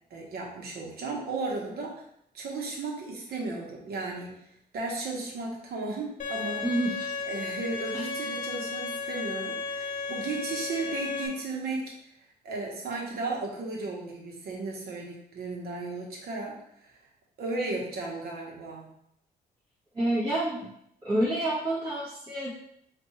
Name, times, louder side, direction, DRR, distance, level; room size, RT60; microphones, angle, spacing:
voice 1, 0.1-2.0 2.3-4.5 4.7-6.6 7.2-11.9 12.4-17.0 17.4-18.9, right 3 dB, 70° right, -1 dB, 1.1 m, -35 dB
Bowed string instrument, 6.2-11.3, left 4 dB, 50° left, 0.7 m, -34 dB
voice 2, 6.6-7.1 7.9-8.0 19.9-20.7 21.0-22.5, right 1 dB, 25° right, -11 dB, 1.4 m, -28 dB
4.6 x 2.5 x 3.1 m, 0.72 s
cardioid pair, 145°, 17 cm